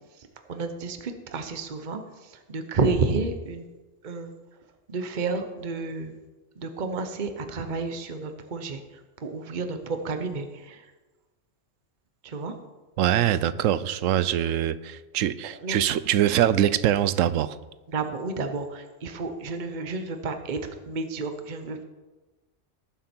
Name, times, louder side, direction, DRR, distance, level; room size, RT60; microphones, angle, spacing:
voice 1, 0.5-3.7 4.0-4.3 4.9-6.1 6.6-8.8 9.2-10.9 12.2-12.5 15.6-15.9 17.9-21.8, right 3 dB, 40° right, 7 dB, 1.0 m, -31 dB
voice 2, 13.0-17.6, right 11 dB, 85° right, 15 dB, 1.0 m, -23 dB
18.5 x 7.4 x 4.5 m, 1.2 s
omnidirectional pair, 1.3 m